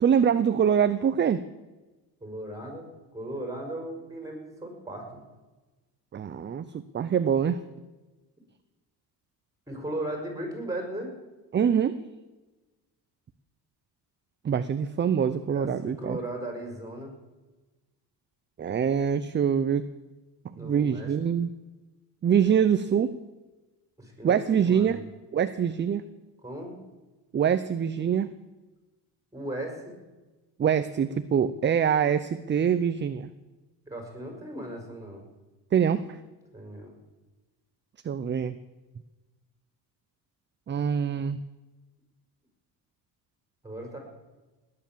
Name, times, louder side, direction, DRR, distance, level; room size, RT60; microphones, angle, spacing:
voice 1, 0.0-1.4 6.1-7.6 11.5-12.0 14.4-16.2 18.6-19.9 20.6-21.5 22.2-23.2 24.2-25.0 25.3-26.0 27.3-28.3 30.6-33.3 35.7-36.2 38.0-38.6 40.7-41.4, right 8 dB, 30° right, 12 dB, 0.6 m, -24 dB
voice 2, 2.2-5.2 9.7-11.1 15.4-17.1 20.6-21.1 24.0-25.0 26.4-26.7 29.3-29.9 33.9-35.2 36.5-36.9 43.6-44.0, right 1 dB, 10° right, 2 dB, 5.2 m, -37 dB
19.0 x 9.8 x 7.4 m, 1.2 s
cardioid pair, 125°, 40 cm